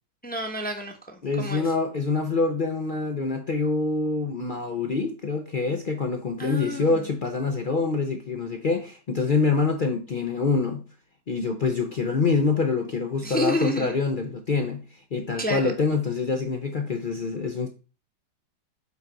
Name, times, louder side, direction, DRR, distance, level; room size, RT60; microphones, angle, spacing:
voice 1, 0.2-1.8 6.4-7.0 13.2-13.9 15.4-15.7, left 1 dB, 10° left, 0.7 m, -29 dB
voice 2, 1.2-10.8 11.3-14.8 15.1-17.7, left 4 dB, 75° left, 0.4 m, -25 dB
8.2 x 3.9 x 4.6 m
omnidirectional pair, 1.9 m